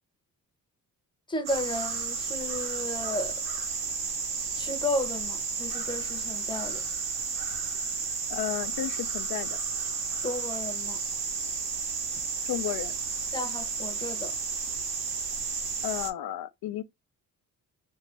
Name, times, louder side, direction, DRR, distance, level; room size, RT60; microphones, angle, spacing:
voice 1, 1.3-3.3 4.5-6.8 10.2-11.0 13.3-14.3, left 1 dB, 15° left, 0.8 m, -33 dB
sound 1, 1.5-16.1, right 5 dB, 75° right, 1.0 m, -32 dB
voice 2, 8.3-9.6 12.4-12.9 15.8-16.8, left 13 dB, 75° left, 0.6 m, -33 dB
2.7 x 2.5 x 3.1 m
cardioid pair, 105°, 37 cm